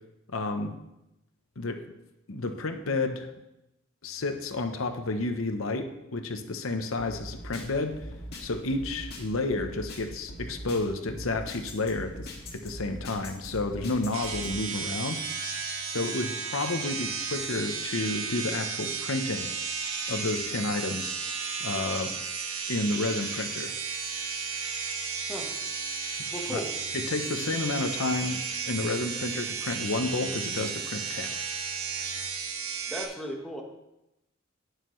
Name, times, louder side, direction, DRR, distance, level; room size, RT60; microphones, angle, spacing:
voice 1, 0.3-0.7 1.6-1.9 2.3-3.3 4.0-8.0 8.4-15.2 15.9-19.5 20.1-21.1 21.6-22.1 22.7-23.7 26.5-26.6 26.9-31.3, left 2 dB, 75° left, 6 dB, 0.8 m, -31 dB
sound 1, 7.0-14.5, equal, 50° left, 1.9 m, -42 dB
sound 2, 14.1-33.0, right 5 dB, 85° right, 1.5 m, -34 dB
voice 2, 26.3-26.7 32.9-33.6, equal, ahead, 0 dB, 1.2 m, -35 dB
18.0 x 6.6 x 3.2 m, 0.90 s
head